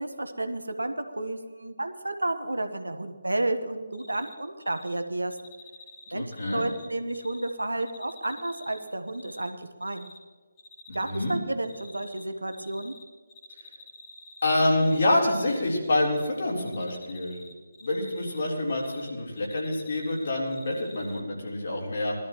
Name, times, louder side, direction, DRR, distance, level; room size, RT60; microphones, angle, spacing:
voice 1, 0.0-5.4 6.1-10.1 10.9-12.9, right 2 dB, 75° right, 8 dB, 1.1 m, -31 dB
Cricket, 3.9-4.3 4.6-4.9 5.3-7.5 7.8-9.5 9.8-10.2 10.6-11.4 11.6-13.0 13.3-15.6 15.9-16.3 16.6-19.1 19.4-21.2, left 2 dB, 15° left, 2.1 m, -49 dB
voice 2, 6.1-6.7 10.9-11.4 14.4-17.4 17.8-22.2, left 1 dB, 50° left, -2 dB, 3.6 m, -27 dB
20.5 x 13.0 x 3.1 m, 1.5 s
figure-of-eight pair, 145°, 0 cm